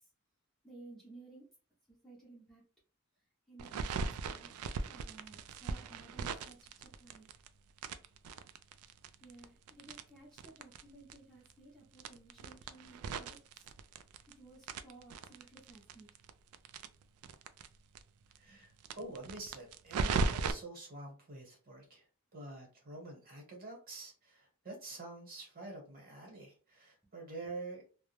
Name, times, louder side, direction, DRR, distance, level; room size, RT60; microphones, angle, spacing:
voice 1, 0.6-1.4 1.9-2.6 3.5-4.5 4.9-7.3 9.2-13.4 14.4-16.1 18.5-18.6, right 2 dB, ahead, 0.6 m, -56 dB
sound 1, 3.6-7.5 7.8-10.8 11.1-11.2 11.5-11.6 12.0-14.3 14.6-17.7 18.0-18.1 18.3-18.4 18.8-20.5, right 4 dB, 80° right, 0.3 m, -38 dB
voice 2, 18.4-18.7 18.9-22.0 22.3-27.8, right 2 dB, 40° right, 1.0 m, -47 dB
2.3 x 2.1 x 3.0 m
head